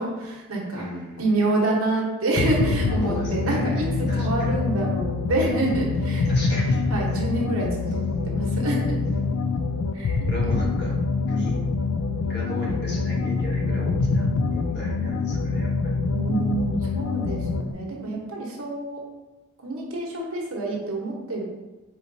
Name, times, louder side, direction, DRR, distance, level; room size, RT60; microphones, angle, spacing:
voice 1, 0.0-0.9 1.2-6.3 6.9-9.1 9.9-10.3 16.1-19.0 19.6-21.4, right 2 dB, 85° right, -2 dB, 1.0 m, -27 dB
voice 2, 0.7-1.3 3.0-4.6 6.3-6.8 7.1-7.2 7.8-8.3 9.2-9.3 10.3-10.9 11.3-11.6 12.2-16.0, equal, 55° left, -3 dB, 1.1 m, -35 dB
sound 1, 2.4-17.7, left 4 dB, 85° left, 0.3 m, -25 dB
4.3 x 3.9 x 2.6 m, 1.1 s
head